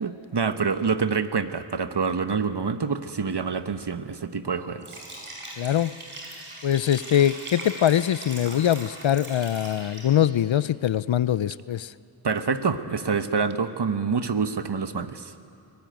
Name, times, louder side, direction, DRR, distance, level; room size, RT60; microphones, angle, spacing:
voice 1, 0.0-5.0 12.2-15.3, right 5 dB, 55° right, 10 dB, 1.2 m, -27 dB
Liquid, 4.8-10.3, right 2 dB, 85° right, 5.1 m, -40 dB
voice 2, 5.6-5.9 6.6-11.9, left 10 dB, 65° left, 18 dB, 0.6 m, -23 dB
23.5 x 17.5 x 9.2 m, 2.5 s
cardioid pair, 45°, 50 cm